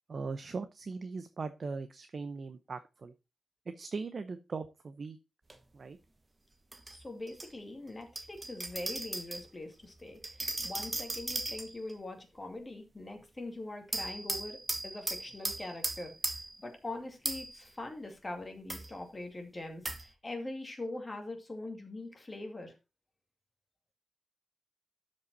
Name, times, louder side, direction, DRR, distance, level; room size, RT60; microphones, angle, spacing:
voice 1, 0.1-3.1 3.8-5.2 5.7-6.0, right 4 dB, 40° right, 10 dB, 0.7 m, -39 dB
sound 1, 5.5-5.6 6.7-7.5 8.2-9.4 10.2-11.9 13.9-16.6 17.2-17.6 18.7-18.9 19.8-20.1, right 2 dB, 20° right, 1.0 m, -37 dB
voice 2, 6.9-16.1 16.6-22.7, left 2 dB, 20° left, 3 dB, 2.4 m, -43 dB
12.5 x 5.4 x 4.0 m, 0.27 s
wide cardioid pair, 150°, 0 cm